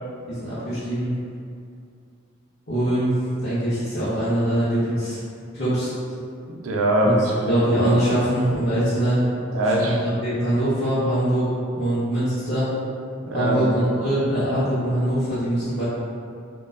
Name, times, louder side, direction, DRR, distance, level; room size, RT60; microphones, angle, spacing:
voice 1, 0.3-1.1 2.7-3.1 3.4-5.2 5.5-5.9 7.0-7.1 7.5-9.2 9.8-11.5 11.7-12.7 13.3-15.8, right 1 dB, 50° left, -13 dB, 0.6 m, -23 dB
voice 2, 6.5-7.6 9.5-10.0 13.2-13.7, right 1 dB, 75° right, -1 dB, 0.4 m, -22 dB
2.7 x 2.1 x 2.3 m, 2.4 s
head